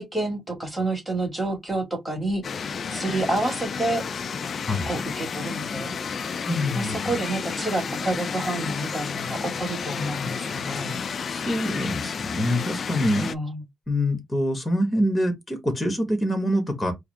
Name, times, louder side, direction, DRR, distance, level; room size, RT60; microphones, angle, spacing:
voice 1, 0.0-2.4 2.9-4.0 4.9-5.9 6.7-11.0 13.1-13.6, right 2 dB, ahead, 2.2 m, -29 dB
sound 1, 2.4-13.4, left 6 dB, 50° left, 0.4 m, -31 dB
voice 2, 6.5-7.0 11.3-13.3 13.9-16.9, left 1 dB, 15° left, 1.5 m, -25 dB
4.8 x 2.4 x 3.5 m
cardioid pair, 120°, 0 cm